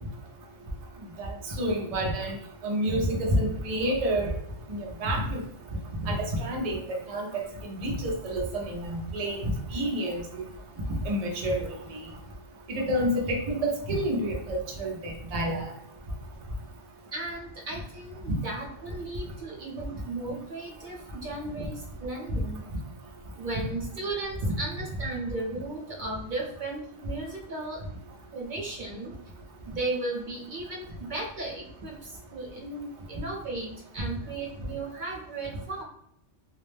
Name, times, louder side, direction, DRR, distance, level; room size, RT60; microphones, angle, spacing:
voice 1, 1.2-2.4 2.6-4.3 4.7-5.4 6.1-6.8 7.1-7.3 7.6-10.2 11.1-12.0 12.7-15.7 24.4-24.5, right 1 dB, 80° right, 0 dB, 0.3 m, -29 dB
voice 2, 17.1-22.6 23.3-27.8 28.3-29.1 29.7-35.8, right 2 dB, 45° right, -2 dB, 0.8 m, -35 dB
2.3 x 2.0 x 3.1 m, 0.73 s
omnidirectional pair, 1.3 m